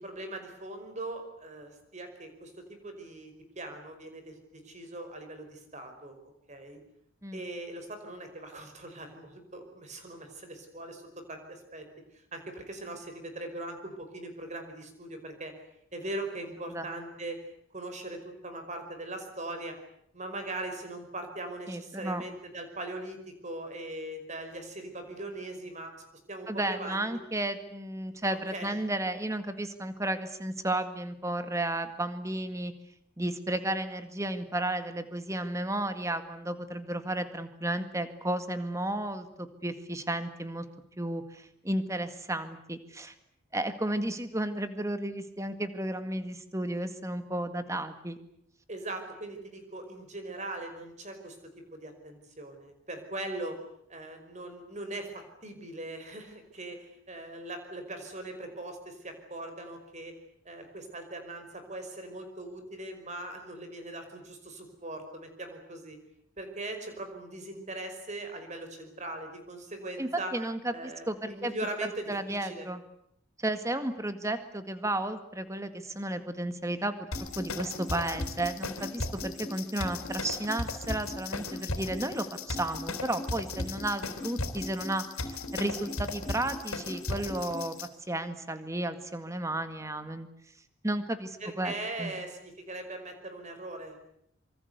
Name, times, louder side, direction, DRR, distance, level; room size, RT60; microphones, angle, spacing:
voice 1, 0.0-6.2 6.5-6.8 7.3-11.0 11.3-11.9 12.3-15.5 15.9-17.4 17.7-19.8 20.1-25.9 26.3-27.2 28.1-28.8 48.7-53.6 53.9-60.2 60.5-66.0 66.4-70.4 70.7-72.7 91.4-94.1, right 2 dB, 35° right, 6 dB, 5.4 m, -40 dB
voice 2, 21.7-22.2 26.5-32.7 33.2-40.7 41.0-43.1 43.5-48.2 70.0-71.5 72.1-72.8 73.4-87.8 88.1-90.3 90.8-91.7 92.0-92.1, right 1 dB, 15° right, 9 dB, 1.9 m, -33 dB
sound 1, 77.1-87.9, left 2 dB, 90° left, 4.0 m, -36 dB
26.0 x 24.5 x 8.2 m, 0.74 s
head